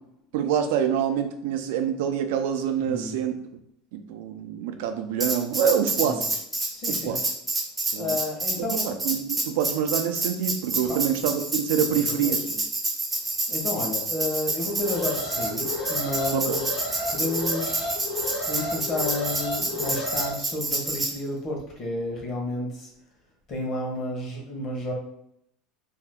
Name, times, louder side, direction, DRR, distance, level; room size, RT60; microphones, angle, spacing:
voice 1, 0.3-3.3 3.9-6.3 6.9-7.2 7.9-8.2 8.6-12.6 16.3-16.6, right 8 dB, 75° right, 7 dB, 0.4 m, -26 dB
voice 2, 2.8-3.1 6.0-6.2 6.7-7.2 7.9-9.0 10.9-11.1 11.9-12.4 13.5-16.8 17.1-18.0 18.4-22.9 23.5-24.9, left 2 dB, 35° left, -1 dB, 1.0 m, -31 dB
Tambourine, 5.2-21.1, right 2 dB, 10° right, 0.6 m, -28 dB
Alarm, 14.7-20.3, left 2 dB, 65° left, 1.3 m, -32 dB
2.7 x 2.3 x 3.4 m, 0.74 s
supercardioid pair, 150°, 0 cm